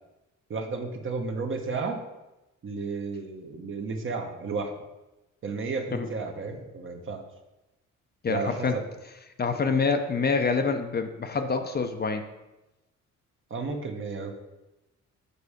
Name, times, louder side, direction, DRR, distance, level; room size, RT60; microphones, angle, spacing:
voice 1, 0.5-2.0 2.6-4.7 5.4-7.2 8.3-8.8 13.5-14.3, right 4 dB, 40° right, 4 dB, 1.1 m, -32 dB
voice 2, 8.2-8.8 9.4-12.2, left 4 dB, 35° left, 6 dB, 0.6 m, -26 dB
6.8 x 4.2 x 5.0 m, 1.0 s
cardioid pair, 90°, 30 cm